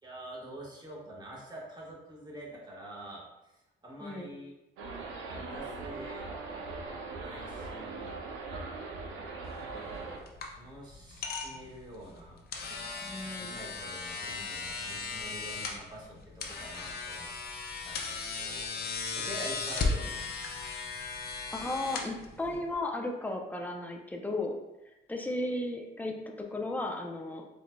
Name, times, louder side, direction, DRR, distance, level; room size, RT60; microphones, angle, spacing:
voice 1, 0.0-3.5 3.8-4.5 5.3-6.3 7.2-8.2 9.7-10.0 10.5-12.4 12.7-17.3 17.8-20.3, right 1 dB, 20° right, -5 dB, 1.4 m, -46 dB
sound 1, 4.8-10.2, right 3 dB, 90° right, 0.6 m, -40 dB
sound 2, 9.5-22.7, left 4 dB, 50° left, 0.6 m, -37 dB
voice 2, 13.0-13.6 21.5-24.5 25.1-27.4, left 2 dB, 10° left, 1 dB, 0.5 m, -35 dB
4.9 x 2.6 x 2.2 m, 0.96 s
cardioid pair, 90°, 20 cm